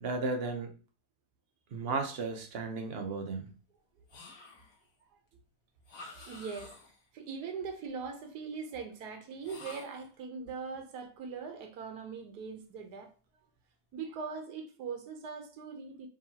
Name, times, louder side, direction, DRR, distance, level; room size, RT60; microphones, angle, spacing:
voice 1, 0.0-0.7 1.7-3.5, right 3 dB, 50° right, 0.7 m, -34 dB
sound 1, 4.1-4.9 5.8-7.1 9.4-10.2, left 3 dB, 55° left, 1.4 m, -50 dB
voice 2, 6.1-6.8 7.1-13.1 13.9-16.1, right 5 dB, 75° right, 1.3 m, -41 dB
4.9 x 2.9 x 2.8 m
omnidirectional pair, 1.8 m